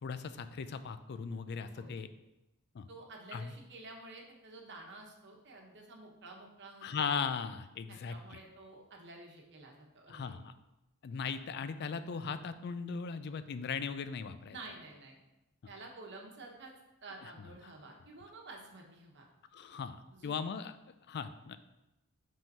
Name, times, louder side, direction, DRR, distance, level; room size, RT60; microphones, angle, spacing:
voice 1, 0.0-2.1 2.7-2.9 3.3-3.5 6.8-8.4 10.1-10.5 11.0-14.6 19.5-20.7 21.1-21.6, left 6 dB, 50° left, 12 dB, 0.4 m, -38 dB
voice 2, 1.6-2.0 2.9-6.9 7.9-10.4 14.5-15.2 15.7-16.7 17.0-19.3 20.1-20.5, right 2 dB, 55° right, 1 dB, 1.1 m, -51 dB
5.3 x 3.7 x 5.4 m, 0.95 s
head